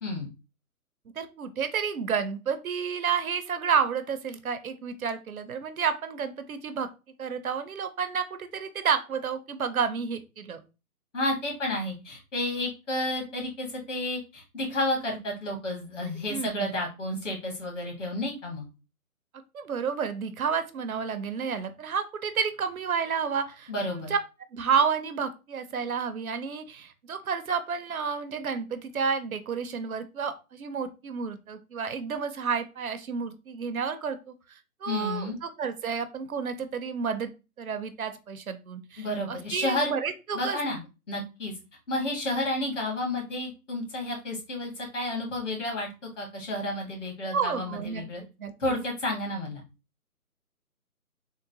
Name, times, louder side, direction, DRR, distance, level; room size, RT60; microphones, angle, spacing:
voice 1, 1.2-6.9 7.2-10.6 16.3-16.7 19.5-24.2 24.5-34.3 34.8-37.3 37.6-40.6 47.3-48.0 48.4-48.5, right 6 dB, 70° right, 10 dB, 0.6 m, -30 dB
voice 2, 11.1-18.6 23.7-24.1 34.9-35.4 39.0-39.9 40.3-40.8 41.1-41.5 41.9-45.9 46.2-48.2 48.6-49.6, left 1 dB, 55° left, 0 dB, 1.7 m, -31 dB
3.7 x 2.1 x 2.7 m, 0.29 s
hypercardioid pair, 160°, 45 cm